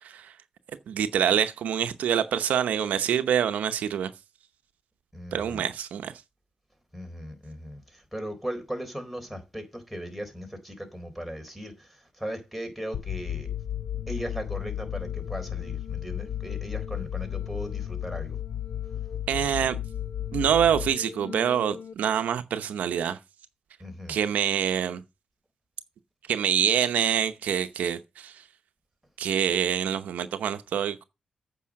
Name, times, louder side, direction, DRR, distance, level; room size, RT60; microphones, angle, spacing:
voice 1, 0.0-0.3 0.9-4.1 5.3-6.1 19.3-19.8 20.3-23.2 24.1-25.0 26.3-28.4 29.2-31.0, right 9 dB, 90° right, 0.8 m, -26 dB
voice 2, 5.1-5.6 6.9-13.5 14.1-18.4 23.8-24.2, equal, ahead, 3.9 m, -38 dB
sound 1, 12.9-21.9, left 10 dB, 80° left, 0.7 m, -34 dB
8.5 x 5.5 x 7.4 m
cardioid pair, 60°, 3 cm